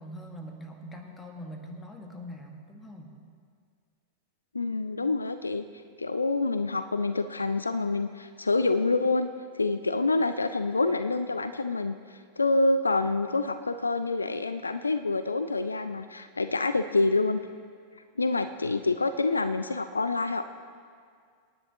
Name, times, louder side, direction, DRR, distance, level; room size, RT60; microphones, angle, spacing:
voice 1, 0.0-3.1, equal, 15° left, 3 dB, 1.7 m, -43 dB
voice 2, 4.5-5.6 6.0-9.3 9.5-17.4 18.2-20.5, left 3 dB, 80° left, 10 dB, 0.4 m, -27 dB
25.5 x 10.0 x 3.0 m, 2.1 s
figure-of-eight pair, 90°, 0 cm